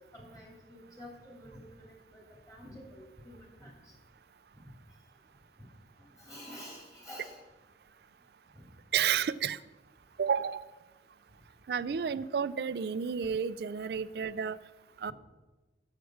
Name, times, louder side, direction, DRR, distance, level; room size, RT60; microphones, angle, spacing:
voice 1, 0.1-2.2 2.5-3.7 6.2-7.4, equal, 20° left, -2 dB, 3.0 m, -49 dB
voice 2, 8.9-9.6 10.2-10.6 11.7-14.6 15.0-15.1, right 7 dB, 60° right, 16 dB, 0.3 m, -31 dB
9.2 x 8.1 x 6.4 m, 1.2 s
head